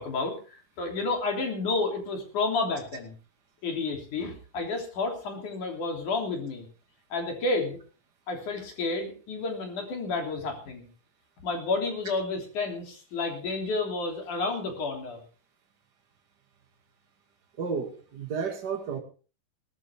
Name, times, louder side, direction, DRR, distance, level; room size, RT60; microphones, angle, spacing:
voice 1, 0.0-3.1 3.6-6.7 7.1-7.8 8.3-10.9 11.4-15.2, left 3 dB, 60° left, 2 dB, 4.7 m, -30 dB
voice 2, 17.6-19.0, right 5 dB, 30° right, 3 dB, 2.6 m, -32 dB
18.5 x 14.0 x 3.6 m, 0.37 s
omnidirectional pair, 4.0 m